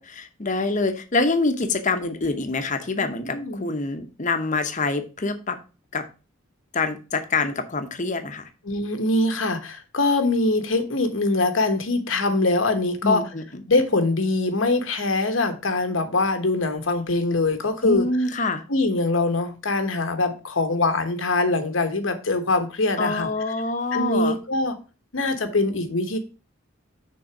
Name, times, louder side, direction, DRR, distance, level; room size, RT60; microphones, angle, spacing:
voice 1, 0.0-5.6 5.9-6.0 6.7-8.5 13.0-13.6 17.8-18.6 23.0-24.4, left 3 dB, 40° left, 0.9 m, -25 dB
voice 2, 3.2-3.7 8.6-13.2 13.7-18.1 18.7-23.3 23.9-24.7 25.1-26.2, left 2 dB, 90° left, 1.2 m, -23 dB
6.4 x 4.0 x 5.9 m
head